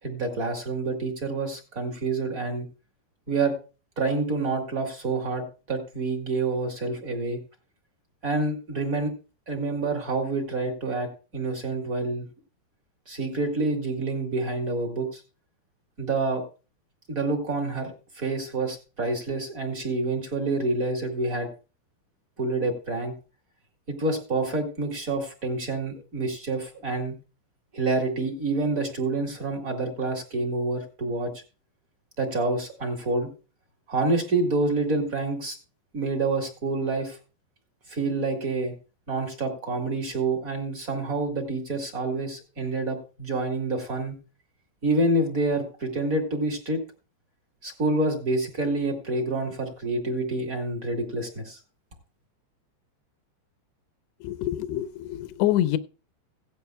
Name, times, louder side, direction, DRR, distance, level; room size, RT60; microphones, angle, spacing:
voice 1, 0.0-2.7 3.3-3.5 3.9-7.4 8.2-9.1 9.5-12.2 13.1-15.2 16.0-16.4 17.1-21.5 22.4-23.1 23.9-27.2 27.7-31.3 32.2-33.3 33.9-35.6 35.9-37.2 37.9-38.7 39.1-44.2 44.8-46.8 47.6-51.6, right 2 dB, 30° right, 3 dB, 1.5 m, -27 dB
voice 2, 54.2-55.8, left 13 dB, 80° left, 12 dB, 2.7 m, -26 dB
17.0 x 11.5 x 2.2 m, 0.33 s
omnidirectional pair, 5.2 m